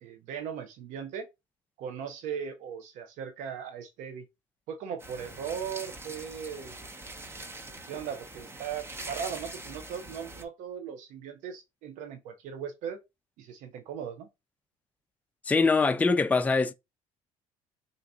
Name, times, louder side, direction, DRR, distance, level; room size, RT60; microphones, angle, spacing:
voice 1, 0.0-1.3 1.8-4.2 4.7-6.8 7.9-13.0 13.4-14.3, right 7 dB, 75° right, 0.7 m, -38 dB
sound 1, 5.0-10.4, right 2 dB, 20° right, 0.8 m, -43 dB
voice 2, 15.5-16.7, left 4 dB, 10° left, 0.4 m, -23 dB
3.8 x 2.7 x 3.5 m
supercardioid pair, 85°, 13 cm